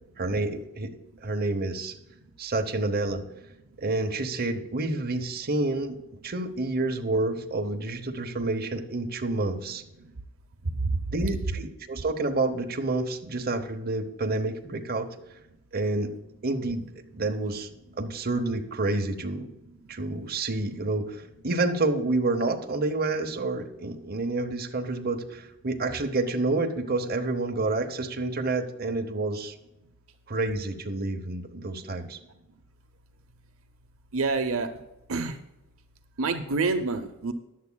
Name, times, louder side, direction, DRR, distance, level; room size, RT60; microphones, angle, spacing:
voice 1, 0.2-0.9 1.2-2.0 2.4-3.2 3.8-6.0 6.2-9.8 11.1-15.1 15.7-16.1 16.4-16.9 17.2-17.7 18.0-19.5 19.9-29.5 30.3-32.2, right 2 dB, 45° right, 4 dB, 0.9 m, -29 dB
voice 2, 34.1-34.7 35.1-35.3 36.2-37.3, right 3 dB, 70° right, 6 dB, 0.8 m, -27 dB
15.5 x 10.5 x 2.3 m, 0.95 s
head